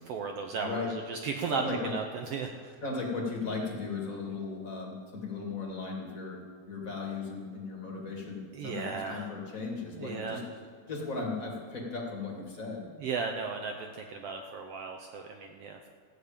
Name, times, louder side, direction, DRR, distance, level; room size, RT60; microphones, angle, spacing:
voice 1, 0.1-2.8 8.5-9.3 10.0-10.4 13.0-15.8, right 5 dB, 70° right, 3 dB, 1.5 m, -35 dB
voice 2, 0.6-1.0 1.5-1.9 2.8-10.4 10.9-12.9, left 3 dB, 30° left, -1 dB, 2.1 m, -36 dB
14.5 x 6.6 x 8.7 m, 2.1 s
omnidirectional pair, 3.4 m